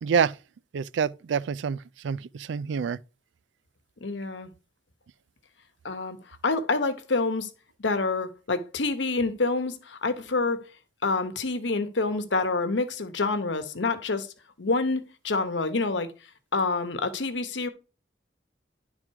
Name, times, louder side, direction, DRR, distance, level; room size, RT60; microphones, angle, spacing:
voice 1, 0.0-0.3 0.7-1.8 2.0-3.0, right 6 dB, 90° right, 0.4 m, -26 dB
voice 2, 4.0-4.5 5.8-7.5 7.8-10.7 11.0-14.3 14.6-16.1 16.5-17.7, left 3 dB, 90° left, 1.0 m, -27 dB
11.0 x 3.8 x 4.6 m
head